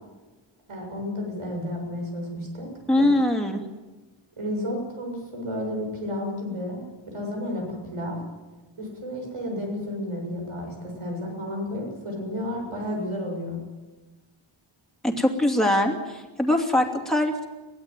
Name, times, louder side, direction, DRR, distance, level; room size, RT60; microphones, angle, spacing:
voice 1, 0.7-2.7 3.0-3.1 4.4-8.2 8.8-13.6, left 1 dB, 85° right, 1 dB, 7.4 m, -32 dB
voice 2, 2.9-3.6 15.0-17.5, left 1 dB, ahead, 2 dB, 2.7 m, -22 dB
23.0 x 16.5 x 9.2 m, 1.2 s
wide cardioid pair, 130°, 50 cm